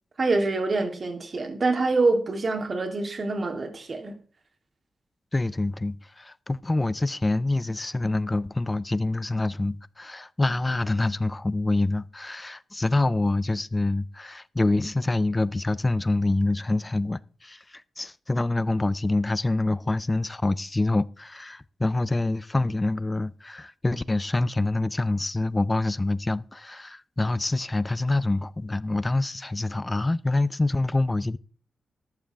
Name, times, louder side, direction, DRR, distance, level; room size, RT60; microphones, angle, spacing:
voice 1, 0.2-4.2, right 3 dB, 45° right, 2.9 m, -25 dB
voice 2, 5.3-31.4, left 2 dB, 20° left, 0.5 m, -26 dB
14.0 x 11.0 x 3.4 m
cardioid pair, 75°, 0 cm